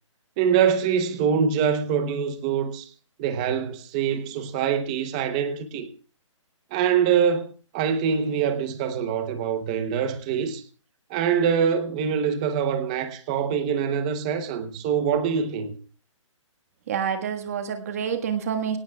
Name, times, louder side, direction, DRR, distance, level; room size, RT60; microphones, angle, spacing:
voice 1, 0.4-2.9 3.2-5.9 6.7-10.6 11.1-15.7, right 7 dB, 15° right, 0.8 m, -24 dB
voice 2, 16.9-18.8, right 7 dB, 30° right, 1.5 m, -27 dB
24.0 x 17.5 x 2.3 m
hypercardioid pair, 180°, 17 cm